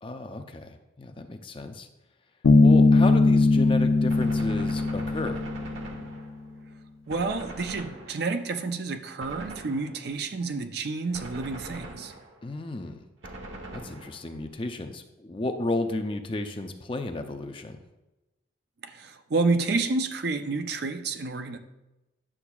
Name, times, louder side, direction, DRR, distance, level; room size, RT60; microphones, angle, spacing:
voice 1, 0.0-1.9 2.6-5.5 12.4-13.0 13.7-17.8, left 2 dB, 25° left, 6 dB, 0.5 m, -33 dB
Bass guitar, 2.4-6.1, left 3 dB, 85° left, 0.6 m, -20 dB
Gunshot gunfire, 4.1-6.6 7.1-8.5 9.2-10.2 11.1-12.5 13.2-14.5, right 2 dB, 75° right, 1.1 m, -42 dB
voice 2, 7.1-12.1 18.8-21.6, right 3 dB, 55° right, 8 dB, 0.5 m, -29 dB
9.9 x 6.9 x 2.3 m, 0.98 s
head